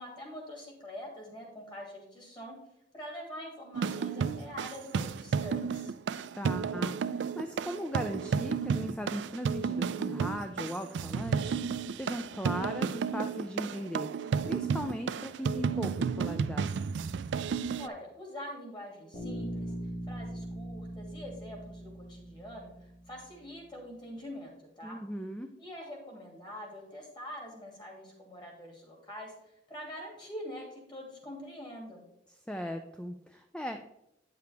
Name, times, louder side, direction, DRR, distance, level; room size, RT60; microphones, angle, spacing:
voice 1, 0.0-2.6 2.9-5.9 17.8-19.7 20.1-25.0 25.6-32.1, equal, 25° left, -1 dB, 2.5 m, -45 dB
sound 1, 3.7-17.9, right 6 dB, 75° right, 0.3 m, -32 dB
voice 2, 6.4-14.1 14.4-16.8 24.8-25.5 32.5-33.9, equal, 5° left, 6 dB, 0.4 m, -38 dB
Bass guitar, 19.1-23.2, right 1 dB, 55° left, 2.7 m, -40 dB
9.3 x 6.8 x 3.4 m, 0.81 s
head